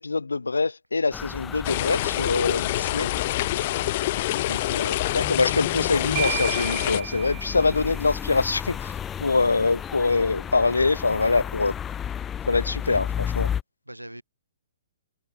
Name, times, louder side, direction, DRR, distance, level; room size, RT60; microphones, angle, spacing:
voice 1, 0.0-3.1 4.5-8.9 9.2-11.7 12.5-13.5, left 3 dB, 75° left, 1.1 m, -24 dB
sound 1, 1.1-13.6, left 9 dB, 15° left, 1.4 m, -34 dB
sound 2, 1.6-7.0, left 16 dB, 40° left, 1.4 m, -26 dB
voice 2, 3.4-3.8 4.2-4.6 13.9-14.2, right 1 dB, 90° right, 6.1 m, -43 dB
sound 3, 6.2-8.3, right 40 dB or more, 30° right, 2.4 m, -33 dB
figure-of-eight pair, 125°, 0 cm